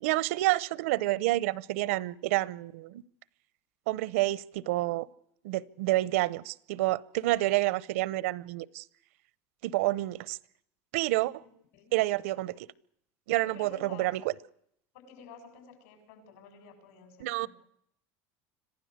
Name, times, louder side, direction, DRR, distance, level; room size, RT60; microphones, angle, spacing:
voice 1, 0.0-3.0 3.9-5.1 5.4-8.8 9.6-10.4 10.9-11.4 11.9-12.7 13.3-14.3 17.2-17.5, right 18 dB, 90° right, 0.8 m, -29 dB
voice 2, 13.3-14.1 14.9-17.5, left 5 dB, 75° left, 7.8 m, -51 dB
26.0 x 15.5 x 8.1 m
cardioid pair, 180°, 7 cm